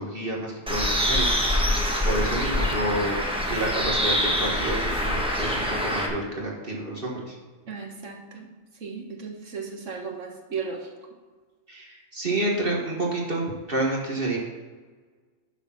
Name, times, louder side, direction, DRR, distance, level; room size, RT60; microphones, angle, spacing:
voice 1, 0.0-1.6 2.0-3.2 3.5-7.3 11.7-14.4, right 1 dB, 45° right, -3 dB, 2.0 m, -29 dB
Bird, 0.7-6.1, equal, 5° right, 1.3 m, -25 dB
voice 2, 7.7-8.5 8.8-10.9, right 5 dB, 75° right, 1 dB, 1.9 m, -35 dB
12.0 x 5.1 x 5.9 m, 1.4 s
omnidirectional pair, 1.3 m